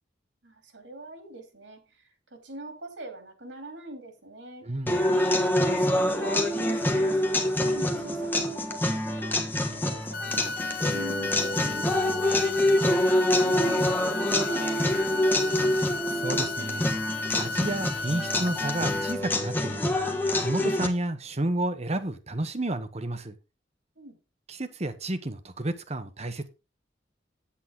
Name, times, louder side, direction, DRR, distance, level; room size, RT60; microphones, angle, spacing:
voice 1, 0.4-4.7 5.6-15.6 24.0-24.2, right 2 dB, 75° right, 3.0 m, -43 dB
voice 2, 4.6-5.0 16.1-16.9 17.4-19.9 20.4-23.3 24.5-26.5, right 1 dB, 35° right, 1.2 m, -31 dB
sound 1, 4.9-20.9, left 1 dB, 10° left, 1.3 m, -26 dB
sound 2, 10.1-19.1, left 3 dB, 55° left, 1.5 m, -34 dB
9.5 x 8.6 x 3.8 m
head